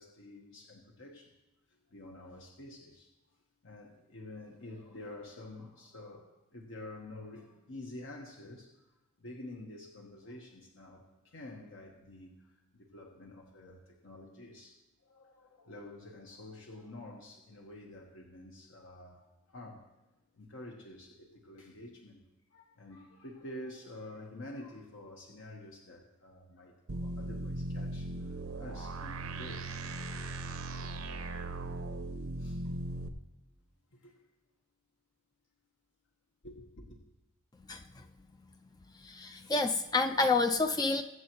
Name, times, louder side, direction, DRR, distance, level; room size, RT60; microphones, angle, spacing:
voice 1, 0.0-1.3 1.7-3.1 3.6-8.9 9.2-19.9 20.3-22.2 22.5-30.3 30.8-30.9 31.2-31.3 32.4-32.8 33.9-34.2 36.4-37.0, left 1 dB, 65° left, 0 dB, 1.2 m, -49 dB
sound 1, 26.9-33.1, right 2 dB, 85° right, 0.8 m, -38 dB
voice 2, 39.0-41.0, left 3 dB, 20° left, 7 dB, 0.4 m, -28 dB
22.0 x 7.9 x 3.1 m, 0.99 s
head